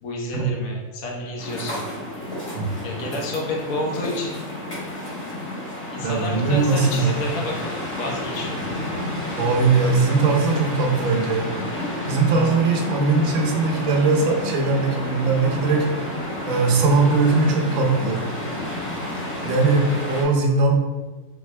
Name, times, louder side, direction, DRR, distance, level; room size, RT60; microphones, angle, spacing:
voice 1, 0.0-2.0 2.8-4.4 5.9-8.6, left 1 dB, 65° left, -2 dB, 1.2 m, -30 dB
sound 1, 1.4-20.2, left 1 dB, 45° left, 1.8 m, -31 dB
voice 2, 6.0-7.2 9.4-11.5 12.0-16.1 16.5-18.2 19.4-20.8, right 3 dB, 65° right, 1 dB, 1.0 m, -20 dB
3.7 x 3.5 x 3.2 m, 1.3 s
omnidirectional pair, 1.6 m